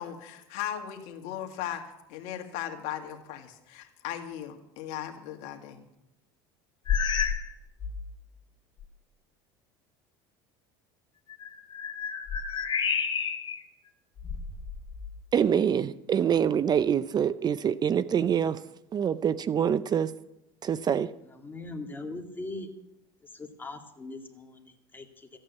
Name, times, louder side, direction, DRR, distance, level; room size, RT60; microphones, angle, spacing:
voice 1, 0.0-5.8, left 10 dB, 70° left, 1.9 m, -37 dB
sound 1, 6.9-7.5 7.8-8.1 8.8-8.9 11.3-13.6 14.2-15.2, left 6 dB, 40° left, 2.5 m, -30 dB
voice 2, 15.3-18.6 18.9-20.1 20.6-21.1, right 8 dB, 35° right, 0.6 m, -25 dB
voice 3, 21.2-22.7 23.3-25.4, left 2 dB, 15° left, 2.3 m, -41 dB
14.0 x 8.8 x 8.3 m
supercardioid pair, 100°, 12 cm